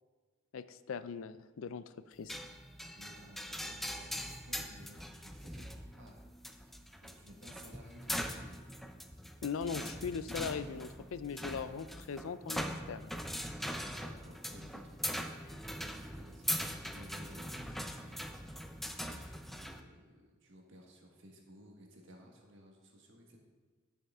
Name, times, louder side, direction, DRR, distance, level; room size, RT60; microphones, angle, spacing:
voice 1, 0.5-2.4 9.4-13.1, left 6 dB, 75° left, 14 dB, 0.4 m, -40 dB
sound 1, 2.3-19.8, equal, ahead, 0.5 m, -41 dB
voice 2, 2.9-5.7 6.0-6.2 7.0-8.7 14.0-16.6 16.9-18.3 19.0-23.4, equal, 65° right, 1 dB, 1.4 m, -57 dB
10.5 x 6.2 x 3.5 m, 1.4 s
head